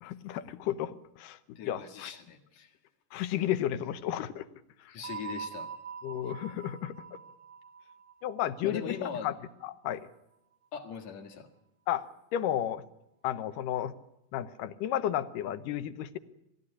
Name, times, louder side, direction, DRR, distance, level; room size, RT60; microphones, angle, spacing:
voice 1, 0.0-2.1 3.1-4.5 4.8-4.9 6.0-7.0 8.2-9.0 9.2-9.3 9.6-10.1 11.9-12.0 12.3-12.8 13.2-14.0 14.3-16.2, left 11 dB, 80° left, 12 dB, 2.5 m, -32 dB
voice 2, 1.6-2.7 4.9-5.7 6.2-6.3 8.6-9.3 10.7-11.5, left 7 dB, 60° left, 3 dB, 3.0 m, -40 dB
sound 1, 5.0-9.7, right 7 dB, 85° right, 0.6 m, -44 dB
20.5 x 15.0 x 9.7 m, 0.85 s
omnidirectional pair, 3.8 m